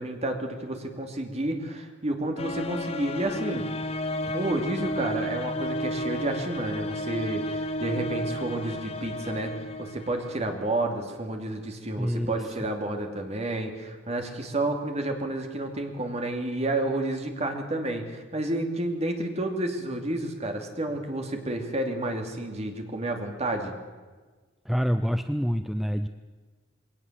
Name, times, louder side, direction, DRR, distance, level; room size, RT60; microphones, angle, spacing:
voice 1, 0.0-3.6 4.3-9.5 9.8-23.7, right 1 dB, 35° right, 4 dB, 2.7 m, -30 dB
sound 1, 2.4-10.7, left 1 dB, 30° left, 1.1 m, -32 dB
voice 2, 12.0-12.4 24.7-26.1, equal, ahead, 9 dB, 0.5 m, -26 dB
21.0 x 18.0 x 7.5 m, 1.4 s
head